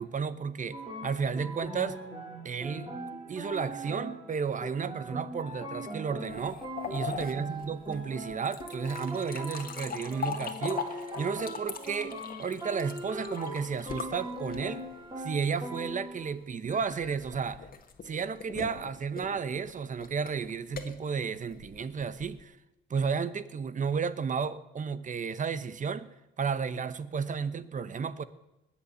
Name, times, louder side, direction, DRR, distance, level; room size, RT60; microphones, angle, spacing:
voice 1, 0.0-2.0 2.4-2.9 3.3-6.6 6.9-14.9 15.2-17.7 18.0-22.6 22.9-28.2, right 6 dB, 40° right, 14 dB, 1.0 m, -33 dB
sound 1, 0.7-16.3, right 1 dB, 20° right, 4.1 m, -41 dB
sound 2, 6.3-14.9 16.7-22.4, left 6 dB, 45° left, 1.8 m, -41 dB
20.0 x 7.3 x 8.0 m, 0.95 s
cardioid pair, 90°, 20 cm